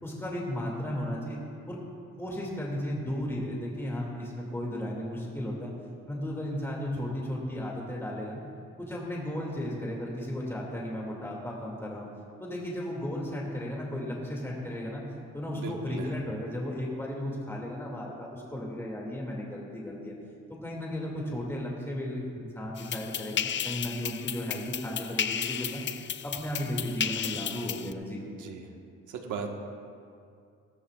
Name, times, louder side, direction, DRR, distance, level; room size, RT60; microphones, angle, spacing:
voice 1, 0.0-1.4 1.7-1.8 2.2-5.7 6.1-8.4 8.8-12.1 12.4-15.0 15.3-20.1 20.5-25.8 26.2-28.2, left 1 dB, 10° left, -3 dB, 2.4 m, -35 dB
voice 2, 15.5-16.1 28.2-28.7 29.1-29.5, right 6 dB, 85° right, 3 dB, 1.5 m, -38 dB
sound 1, 22.8-27.9, left 8 dB, 40° left, 0.5 m, -33 dB
19.0 x 13.0 x 2.4 m, 2.4 s
cardioid pair, 90°, 30 cm